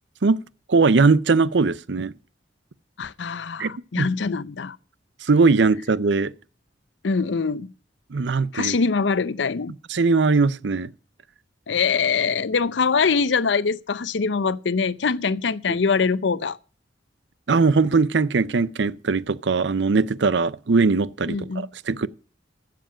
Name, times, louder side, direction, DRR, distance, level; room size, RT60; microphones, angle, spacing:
voice 1, 0.7-2.1 3.6-4.1 5.2-6.3 8.1-8.8 9.9-10.9 15.7-15.8 17.5-22.1, right 4 dB, 75° right, 0.6 m, -20 dB
voice 2, 3.0-4.8 7.0-7.7 8.5-9.7 11.7-16.6 21.3-21.7, left 5 dB, 80° left, 0.6 m, -23 dB
15.0 x 7.6 x 5.0 m
head